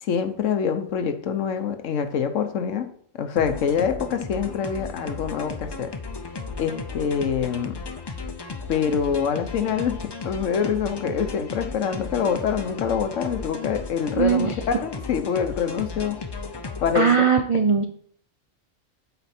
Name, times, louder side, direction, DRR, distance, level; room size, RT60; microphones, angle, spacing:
voice 1, 0.0-2.9 3.1-5.9 6.6-7.8 8.7-10.0 10.2-16.2 16.8-17.1, left 7 dB, 80° left, 8 dB, 1.2 m, -25 dB
sound 1, 3.4-17.1, left 4 dB, 35° left, 0.4 m, -35 dB
voice 2, 14.2-14.5 16.9-17.8, right 6 dB, 60° right, 5 dB, 0.3 m, -19 dB
8.1 x 4.4 x 4.3 m, 0.62 s
omnidirectional pair, 1.3 m